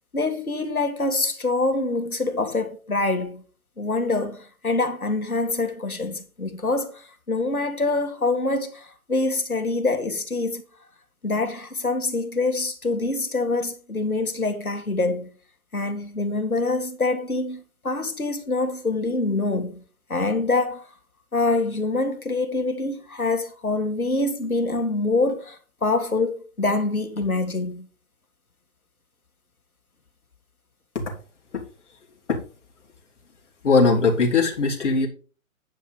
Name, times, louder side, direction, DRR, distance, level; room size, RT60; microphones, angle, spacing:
voice 1, 0.1-3.4 3.8-10.6 11.2-15.3 15.7-19.8 20.1-20.9 21.3-27.8, left 3 dB, 85° left, 1.9 m, -25 dB
voice 2, 33.6-35.1, left 4 dB, 55° left, 3.3 m, -19 dB
9.5 x 5.6 x 5.0 m
figure-of-eight pair, 135°, 42 cm